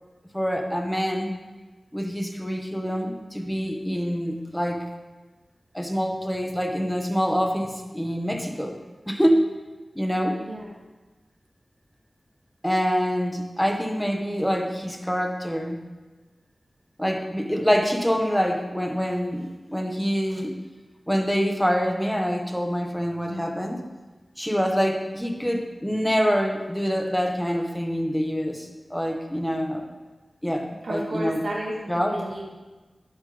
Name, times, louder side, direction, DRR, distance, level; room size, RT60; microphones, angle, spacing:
voice 1, 0.3-1.3 1.9-4.8 5.7-8.8 9.1-9.5 9.9-10.4 12.6-15.8 17.0-20.6 21.1-23.8 24.4-29.9 30.4-31.4 31.9-32.1, equal, 5° left, 3 dB, 1.6 m, -25 dB
voice 2, 10.4-10.7 30.8-32.5, right 1 dB, 90° right, -5 dB, 3.4 m, -32 dB
12.0 x 10.5 x 3.5 m, 1.2 s
cardioid pair, 45°, 0 cm